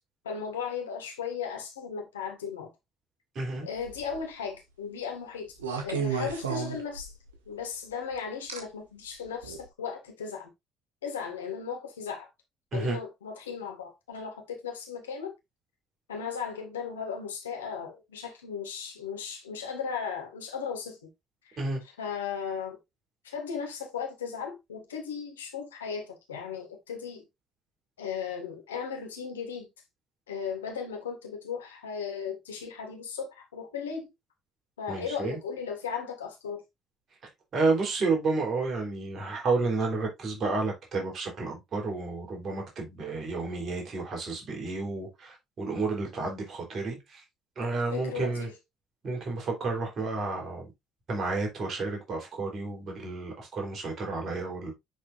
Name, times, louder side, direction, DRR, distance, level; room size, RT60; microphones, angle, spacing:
voice 1, 0.2-2.7 3.6-5.6 5.8-7.1 7.5-10.5 11.0-12.3 12.7-15.3 16.1-21.0 21.5-21.6 22.0-22.8 23.2-27.2 28.0-29.7 30.3-34.1 34.8-36.6 47.9-48.5, left 6 dB, 85° left, 1.9 m, -36 dB
voice 2, 3.4-3.7 12.7-13.0 21.6-21.8 34.9-35.4 37.5-47.2 47.6-48.5 49.0-50.7 51.1-54.7, right 3 dB, 50° right, 3.6 m, -31 dB
sound 1, 3.8-4.2 5.6-7.4 8.5-8.6 9.4-9.6, right 6 dB, 85° right, 1.2 m, -32 dB
10.0 x 4.5 x 2.5 m
hypercardioid pair, 50°, 0 cm